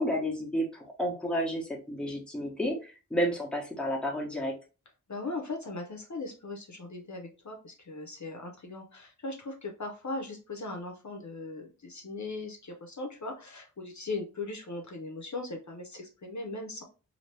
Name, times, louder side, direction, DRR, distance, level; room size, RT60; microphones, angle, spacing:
voice 1, 0.0-4.5, equal, 5° left, -2 dB, 1.0 m, -31 dB
voice 2, 5.1-16.8, left 2 dB, 55° left, 2 dB, 0.7 m, -39 dB
2.9 x 2.7 x 3.1 m, 0.33 s
wide cardioid pair, 60°, 34 cm